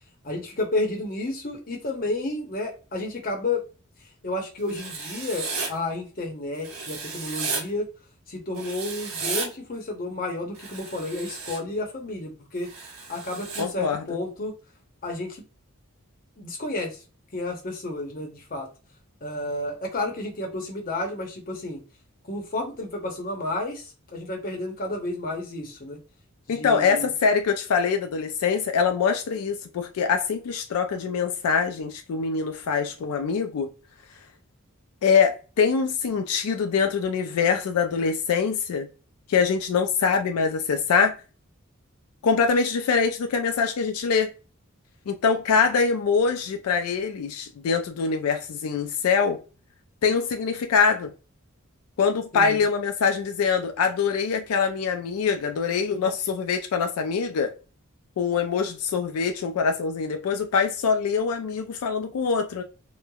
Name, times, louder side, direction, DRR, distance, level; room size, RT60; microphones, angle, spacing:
voice 1, 0.2-3.6 4.2-7.9 8.3-12.7 13.1-14.5 15.0-15.4 16.4-17.0 17.3-18.7 19.2-21.8 22.3-26.0 26.5-27.1 52.3-52.6, left 2 dB, 40° left, 0.7 m, -31 dB
Writing, 4.7-5.7 6.6-7.6 8.6-9.5 10.5-11.6 12.6-13.6, right 4 dB, 75° right, 1.0 m, -33 dB
voice 2, 13.6-14.0 26.5-33.7 35.0-38.9 39.3-41.1 42.2-44.3 45.1-49.4 50.0-51.1 52.0-57.5 58.2-62.6, left 5 dB, 85° left, 0.4 m, -24 dB
3.1 x 2.1 x 2.2 m
head